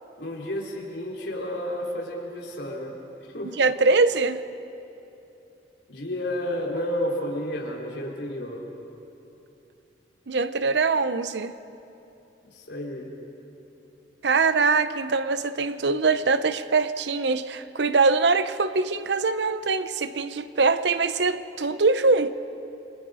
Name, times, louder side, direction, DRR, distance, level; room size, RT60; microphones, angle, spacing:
voice 1, 0.2-3.0 3.3-3.6 5.9-8.7 12.5-13.1, left 1 dB, 70° left, 3.8 m, -31 dB
voice 2, 3.6-4.4 10.3-11.5 14.2-22.3, right 4 dB, 70° right, 0.7 m, -23 dB
29.5 x 23.0 x 5.0 m
head